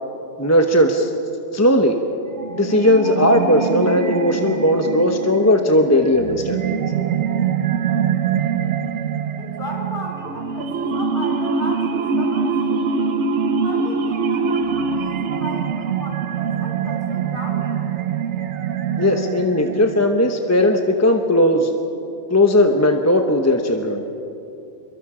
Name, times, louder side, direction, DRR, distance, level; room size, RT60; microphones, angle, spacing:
voice 1, 0.4-1.1 1.5-2.0 2.6-6.8 19.0-21.8 22.3-24.1, left 1 dB, 15° left, 4 dB, 1.0 m, -17 dB
sound 1, 2.3-20.3, right 6 dB, 85° right, 1.1 m, -24 dB
voice 2, 9.4-13.2 13.6-17.8, equal, 50° left, -2 dB, 5.2 m, -35 dB
27.5 x 23.0 x 5.0 m, 2.8 s
omnidirectional pair, 1.2 m